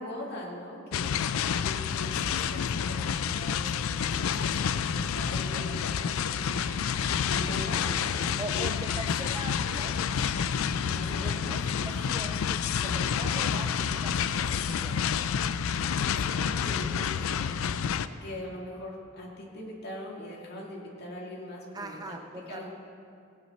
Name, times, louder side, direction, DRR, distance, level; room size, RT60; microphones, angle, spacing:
voice 1, 0.0-6.9 7.3-8.2 10.8-11.3 11.7-11.9 16.2-17.6 18.2-22.1 22.5-22.7, left 1 dB, 50° left, -3 dB, 2.3 m, -42 dB
sound 1, 0.9-18.1, left 7 dB, 80° left, 0.4 m, -29 dB
voice 2, 8.4-10.1 11.2-15.4 16.3-16.4 21.7-22.7, right 2 dB, 20° right, 5 dB, 0.4 m, -42 dB
17.0 x 9.1 x 4.3 m, 2.4 s
head